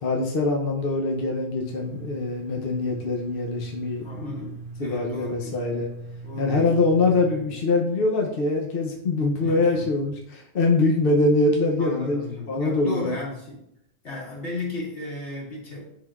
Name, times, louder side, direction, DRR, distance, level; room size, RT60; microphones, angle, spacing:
voice 1, 0.0-5.9 6.4-13.2, left 3 dB, 60° left, 0 dB, 0.9 m, -24 dB
sound 1, 1.6-7.4, right 3 dB, 55° right, 1.1 m, -39 dB
voice 2, 4.0-5.6 6.2-6.7 9.4-9.9 11.8-13.6 14.0-15.8, left 2 dB, 85° left, -4 dB, 2.3 m, -35 dB
10.5 x 3.8 x 2.4 m, 0.78 s
omnidirectional pair, 1.1 m